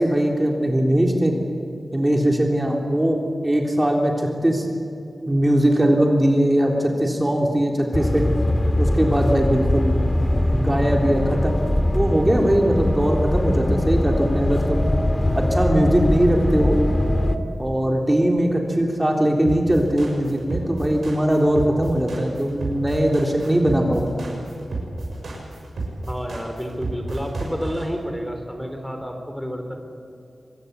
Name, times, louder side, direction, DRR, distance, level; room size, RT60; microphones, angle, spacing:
voice 1, 0.0-1.3 1.9-4.7 5.3-8.3 8.8-10.0 10.5-14.9 15.4-16.8 17.6-24.2, right 1 dB, 20° right, 1 dB, 3.7 m, -20 dB
sound 1, 7.9-17.4, left 1 dB, 25° left, 2.0 m, -21 dB
sound 2, 19.4-27.8, right 3 dB, 80° right, 6.9 m, -30 dB
voice 2, 26.1-29.8, equal, 5° left, 4 dB, 3.8 m, -30 dB
24.5 x 21.0 x 8.3 m, 2.7 s
cardioid pair, 60°, 0 cm